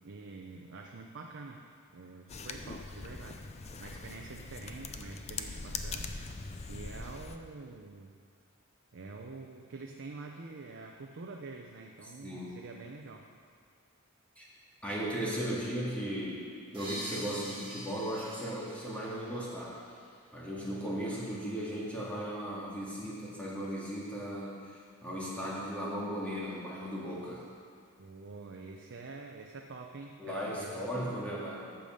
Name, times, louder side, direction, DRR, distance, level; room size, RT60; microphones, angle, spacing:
voice 1, 0.0-1.6 1.9-3.5 3.8-6.2 6.7-8.1 8.9-13.2 28.0-30.8, right 3 dB, 55° right, 2 dB, 0.6 m, -46 dB
sound 1, 2.3-7.4, left 4 dB, 30° left, 0.5 m, -42 dB
voice 2, 12.2-12.5 14.4-14.5 14.8-16.4 16.7-19.7 20.3-27.4 30.2-31.6, equal, 5° left, -7 dB, 2.1 m, -36 dB
sound 2, 16.7-20.3, equal, 25° right, 2.3 m, -45 dB
8.6 x 7.1 x 6.5 m, 2.2 s
head